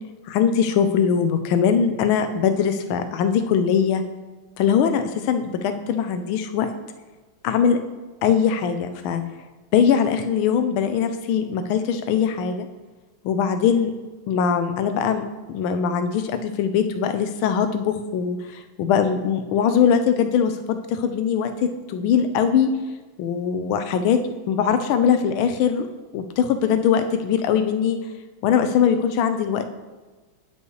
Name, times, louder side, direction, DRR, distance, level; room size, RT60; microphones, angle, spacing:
voice 1, 0.3-4.0 4.6-6.7 7.4-7.8 8.2-9.2 9.7-12.7 13.2-13.9 14.3-22.7 23.2-24.2 24.5-25.9 26.1-28.0 28.4-29.7, left 7 dB, 90° left, 8 dB, 1.5 m, -21 dB
9.7 x 5.4 x 3.1 m, 1.3 s
omnidirectional pair, 2.2 m